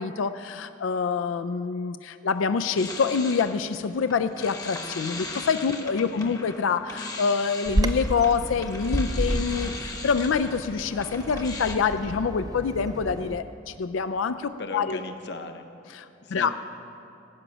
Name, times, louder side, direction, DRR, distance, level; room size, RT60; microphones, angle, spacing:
voice 1, 0.0-15.0 15.9-16.5, left 5 dB, 90° left, 11 dB, 0.4 m, -26 dB
sound 1, 2.3-11.8, left 2 dB, 20° left, 0.9 m, -39 dB
voice 2, 5.8-6.5 14.6-15.6 16.2-16.5, left 3 dB, 60° left, 6 dB, 0.9 m, -38 dB
Bird vocalization bird call bird song, 7.7-13.3, right 1 dB, 20° right, 0.4 m, -31 dB
16.5 x 6.1 x 8.9 m, 2.7 s
head